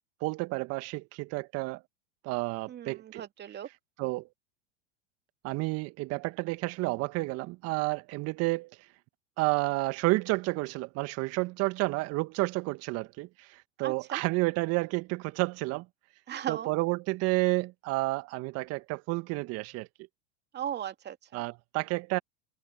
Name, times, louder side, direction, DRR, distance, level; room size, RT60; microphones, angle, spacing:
voice 1, 0.2-1.8 2.2-3.2 4.0-4.3 5.4-8.8 9.4-15.9 16.5-19.9 21.3-22.2, right 23 dB, 50° right, 1.8 m, -30 dB
voice 2, 2.7-3.7 13.8-14.2 16.3-16.7 20.5-21.4, right 10 dB, 35° right, 2.6 m, -37 dB
hypercardioid pair, 90°, 32 cm